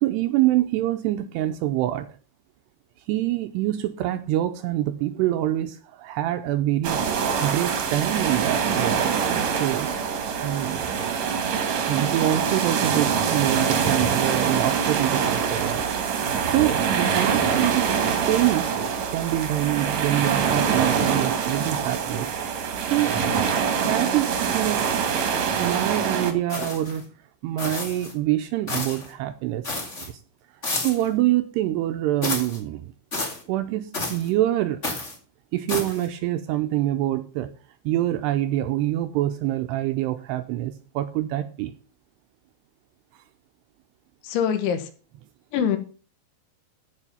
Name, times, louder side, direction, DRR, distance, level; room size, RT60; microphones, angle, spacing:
voice 1, 0.0-2.1 3.1-9.2 9.6-10.0 10.4-10.9 11.9-15.8 16.5-17.9 18.3-18.7 19.1-22.3 22.9-23.2 23.9-25.0 25.6-27.0 27.4-29.7 30.0-30.2 30.7-32.9 33.5-34.8 35.5-37.5 37.9-41.7, right 14 dB, 80° right, 9 dB, 2.5 m, -25 dB
sound 1, 6.8-26.3, right 6 dB, 60° right, 1.9 m, -24 dB
sound 2, 26.5-27.0 27.6-28.1 28.7-29.1 29.6-30.1 30.6-31.1 32.2-32.6 33.1-33.4 33.9-34.3 34.8-35.2 35.7-36.1, left 2 dB, 35° left, 1.1 m, -30 dB
voice 2, 44.2-44.9 45.5-45.8, left 8 dB, 80° left, 8 dB, 3.7 m, -24 dB
14.5 x 5.1 x 5.6 m, 0.37 s
omnidirectional pair, 5.3 m